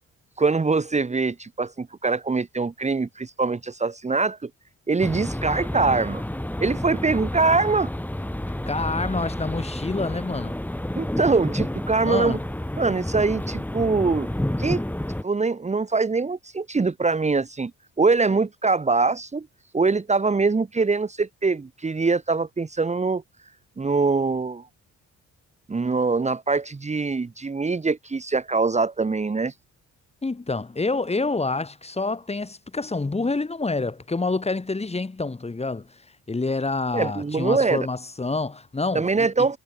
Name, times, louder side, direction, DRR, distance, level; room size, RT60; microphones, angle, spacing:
voice 1, 0.4-4.5 4.9-6.2 6.6-7.9 10.9-12.4 12.8-14.3 14.6-14.8 15.2-17.7 18.0-19.5 19.7-23.2 23.8-24.7 25.7-29.5 36.9-37.9 38.9-39.6, right 4 dB, 25° right, 1.6 m, -23 dB
sound 1, 5.0-15.2, left 1 dB, 5° left, 5.7 m, -30 dB
voice 2, 8.7-10.6 12.0-12.4 30.2-35.9 36.3-39.3, left 3 dB, 20° left, 3.9 m, -27 dB
cardioid pair, 90°, 30 cm